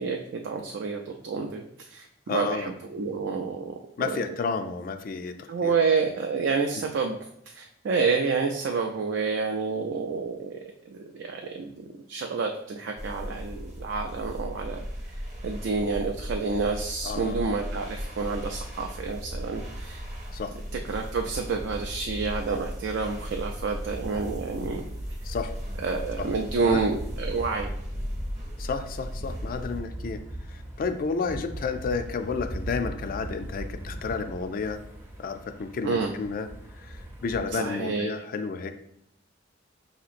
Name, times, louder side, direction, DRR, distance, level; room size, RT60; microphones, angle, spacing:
voice 1, 0.0-3.7 4.0-4.2 5.5-7.2 7.5-10.6 10.9-14.8 15.4-20.0 20.9-24.8 25.8-27.7 35.8-36.1 37.6-38.1, right 4 dB, 75° right, 3 dB, 0.4 m, -29 dB
voice 2, 2.3-2.7 4.0-5.8 17.0-17.5 20.3-20.5 25.2-25.5 26.2-26.3 26.6-26.8 28.6-30.2 30.5-34.8 35.2-36.5 36.8-38.7, left 4 dB, 50° left, 8 dB, 0.3 m, -31 dB
sound 1, 13.0-29.8, equal, 40° right, 0.9 m, -37 dB
sound 2, 23.8-37.5, right 1 dB, 10° right, 0.5 m, -40 dB
5.9 x 2.9 x 2.4 m, 0.75 s
head